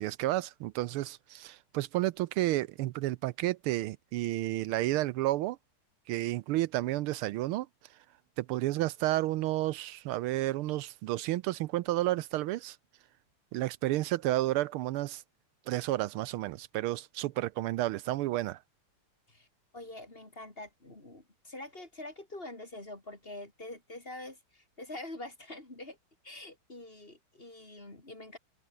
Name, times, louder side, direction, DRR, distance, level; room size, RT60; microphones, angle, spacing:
voice 1, 0.0-5.6 6.1-7.7 8.4-12.8 13.5-15.2 15.7-18.6, right 16 dB, 80° right, 1.5 m, -31 dB
voice 2, 19.7-26.0 26.2-28.4, left 2 dB, 25° left, 4.2 m, -45 dB
open air
omnidirectional pair, 2.4 m